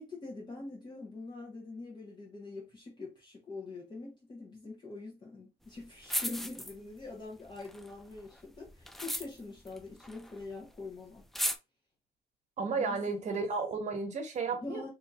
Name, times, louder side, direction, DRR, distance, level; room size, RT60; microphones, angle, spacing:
voice 1, 0.0-11.2 12.7-13.4 14.5-14.9, left 3 dB, 25° left, 1.0 m, -44 dB
sound 1, 5.7-5.8 6.0-7.1 7.5-10.5 10.8-10.9 11.2-11.6, equal, ahead, 0.3 m, -36 dB
voice 2, 12.6-14.9, right 4 dB, 45° right, 1.1 m, -33 dB
2.8 x 2.7 x 3.5 m
cardioid pair, 110°, 17 cm